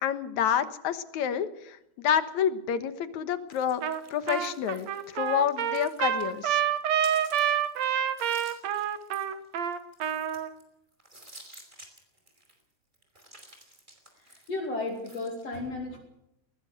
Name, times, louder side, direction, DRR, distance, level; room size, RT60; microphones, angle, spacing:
voice 1, 0.0-3.8 4.1-4.9 5.1-6.6, left 9 dB, 75° left, 11 dB, 2.6 m, -28 dB
sound 1, 3.5-6.5 6.7-10.6 11.0-12.6 12.9-15.5, right 1 dB, 15° right, 4.9 m, -52 dB
Trumpet, 3.8-4.0 4.3-10.5, right 9 dB, 65° right, 2.5 m, -28 dB
voice 2, 14.2-16.0, left 2 dB, 55° left, 1 dB, 3.7 m, -34 dB
20.0 x 19.5 x 6.7 m, 0.81 s
omnidirectional pair, 3.4 m